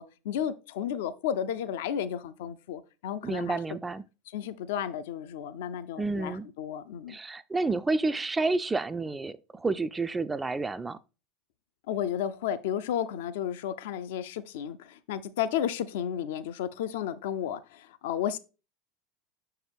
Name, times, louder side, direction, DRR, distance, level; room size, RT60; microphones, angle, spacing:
voice 1, 0.0-3.6 4.3-7.2 11.9-18.4, left 9 dB, 65° left, 0.4 m, -33 dB
voice 2, 3.2-4.0 6.0-6.5 7.1-11.0, right 3 dB, 15° right, 0.3 m, -30 dB
6.3 x 4.5 x 3.3 m
figure-of-eight pair, 75°, 0 cm